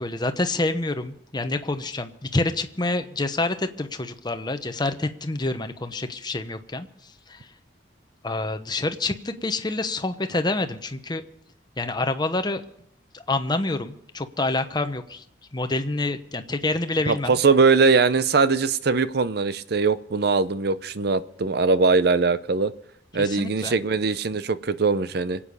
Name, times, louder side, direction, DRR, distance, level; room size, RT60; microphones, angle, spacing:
voice 1, 0.0-6.9 7.3-7.4 8.2-11.2 11.8-12.6 13.1-15.2 15.5-17.4 23.2-23.8, left 2 dB, 25° left, 8 dB, 0.9 m, -27 dB
voice 2, 17.1-22.7 23.1-25.4, right 4 dB, 60° right, 14 dB, 0.7 m, -21 dB
25.5 x 8.7 x 5.4 m, 0.72 s
head